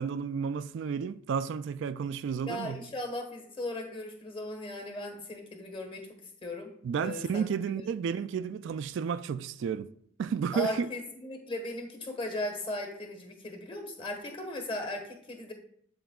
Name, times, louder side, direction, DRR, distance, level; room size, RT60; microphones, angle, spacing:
voice 1, 0.0-2.8 6.8-9.9 10.2-10.9, right 6 dB, 60° right, 0.3 m, -32 dB
voice 2, 2.5-6.1 6.4-6.7 7.0-7.8 10.5-15.5, left 1 dB, 25° left, 1.3 m, -37 dB
8.1 x 7.6 x 2.3 m
head